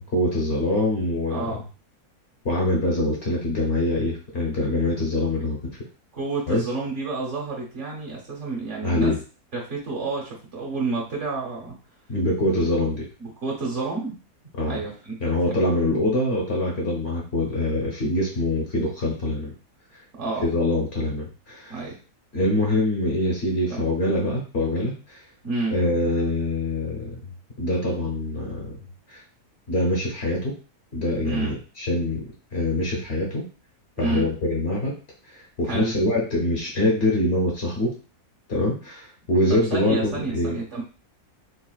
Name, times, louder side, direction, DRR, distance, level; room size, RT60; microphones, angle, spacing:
voice 1, 0.1-1.4 2.4-5.6 6.5-6.6 8.8-9.2 12.1-13.1 14.6-14.8 15.2-19.5 20.4-21.8 22.3-25.2 25.7-27.2 27.6-28.7 29.1-29.2 29.7-30.5 30.9-32.2 32.5-33.4 34.0-34.9 35.3-37.9 38.5-40.5, left 1 dB, 50° left, -2 dB, 0.9 m, -24 dB
voice 2, 1.3-1.6 6.1-9.1 9.5-11.7 13.2-14.1 14.7-15.2 20.2-20.5 21.7-22.0 23.7-23.9 25.4-25.7 31.2-31.6 34.0-34.3 35.7-36.0 39.5-40.8, right 3 dB, 50° right, -3 dB, 1.3 m, -29 dB
3.9 x 2.4 x 2.3 m, 0.35 s
omnidirectional pair, 1.6 m